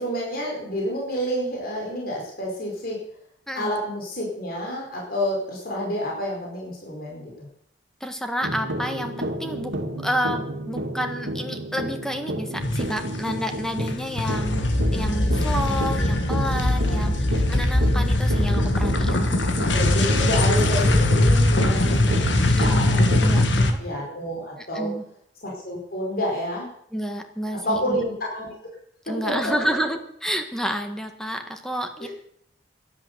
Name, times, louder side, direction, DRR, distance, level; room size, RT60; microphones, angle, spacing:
voice 1, 0.0-3.0 3.5-7.5 16.7-17.2 19.7-24.9 25.4-26.7 27.5-28.6 29.1-29.7 32.0-32.1, equal, 55° left, -2 dB, 4.8 m, -29 dB
voice 2, 8.0-9.7 10.0-14.7 14.9-19.3 22.5-23.8 24.6-25.0 26.9-28.0 29.1-32.1, equal, 5° left, 5 dB, 1.6 m, -30 dB
sound 1, 8.4-23.5, right 1 dB, 80° right, 2.2 m, -31 dB
sound 2, 12.6-13.4 13.6-23.7, left 1 dB, 85° left, 1.9 m, -21 dB
12.5 x 11.5 x 8.0 m, 0.70 s
head